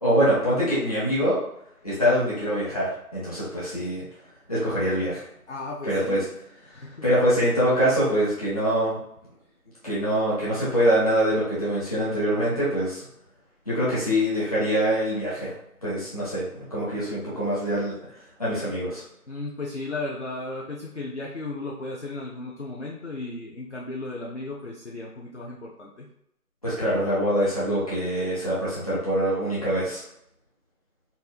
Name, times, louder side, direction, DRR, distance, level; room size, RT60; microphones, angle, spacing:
voice 1, 0.0-1.4 1.8-4.0 4.5-5.2 5.8-6.2 7.0-8.9 9.8-13.1 13.6-15.5 15.8-18.0 18.4-19.0 26.6-30.0, equal, 25° left, -10 dB, 1.0 m, -24 dB
voice 2, 5.5-6.2 6.6-7.1 19.3-26.1, left 2 dB, 50° left, -3 dB, 0.5 m, -35 dB
4.1 x 2.5 x 2.2 m, 0.77 s
figure-of-eight pair, 170°, 47 cm